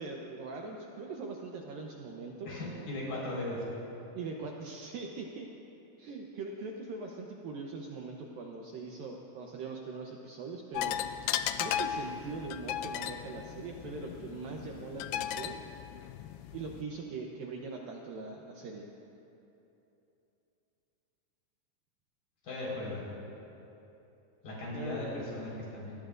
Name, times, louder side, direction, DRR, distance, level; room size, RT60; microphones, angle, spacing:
voice 1, 0.0-2.5 4.1-5.5 6.0-11.0 11.6-15.6 16.5-18.9 24.7-25.0, right 4 dB, 75° right, 0 dB, 2.2 m, -41 dB
voice 2, 2.5-3.6 22.4-23.0 24.4-26.0, left 1 dB, 55° left, -5 dB, 6.3 m, -37 dB
sound 1, 10.8-16.8, left 10 dB, 85° left, 2.4 m, -36 dB
27.0 x 19.5 x 2.6 m, 2.9 s
omnidirectional pair, 5.0 m